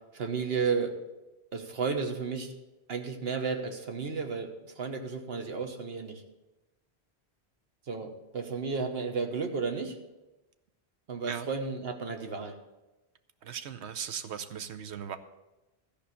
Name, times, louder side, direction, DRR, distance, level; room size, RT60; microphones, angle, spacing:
voice 1, 0.1-0.9 1.5-2.5 2.9-6.2 7.9-10.0 11.1-12.5, right 5 dB, 65° right, 5 dB, 1.4 m, -33 dB
voice 2, 13.4-15.2, right 8 dB, 90° right, 10 dB, 1.1 m, -38 dB
13.5 x 5.2 x 8.4 m, 1.0 s
omnidirectional pair, 1.1 m